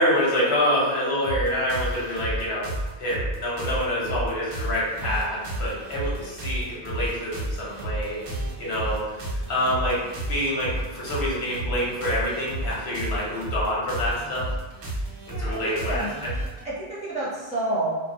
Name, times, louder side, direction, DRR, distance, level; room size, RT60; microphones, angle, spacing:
voice 1, 0.0-2.7 3.0-8.2 8.6-9.0 9.5-10.0 10.3-14.5 15.3-16.3, equal, 80° left, -6 dB, 1.0 m, -26 dB
sound 1, 1.2-16.6, right 1 dB, 65° right, 0.7 m, -31 dB
voice 2, 15.3-16.1 16.6-18.0, right 2 dB, 10° right, -9 dB, 0.6 m, -29 dB
2.2 x 2.1 x 2.8 m, 1.2 s
omnidirectional pair, 1.1 m